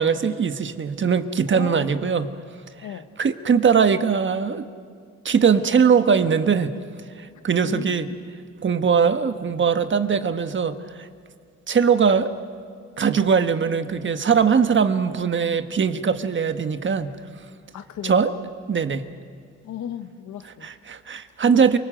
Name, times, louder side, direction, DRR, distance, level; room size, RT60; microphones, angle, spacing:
voice 1, 0.0-2.3 3.2-4.7 5.2-6.8 7.2-8.1 8.6-11.1 11.7-12.3 13.0-17.2 18.0-18.3 18.7-19.1 20.4-21.8, right 6 dB, 40° right, 9 dB, 1.4 m, -21 dB
voice 2, 1.5-1.9 2.8-3.1 7.6-8.2 17.7-18.4 19.6-20.7, left 9 dB, 75° left, 9 dB, 1.4 m, -35 dB
27.5 x 20.0 x 7.9 m, 2.2 s
cardioid pair, 90°, 30 cm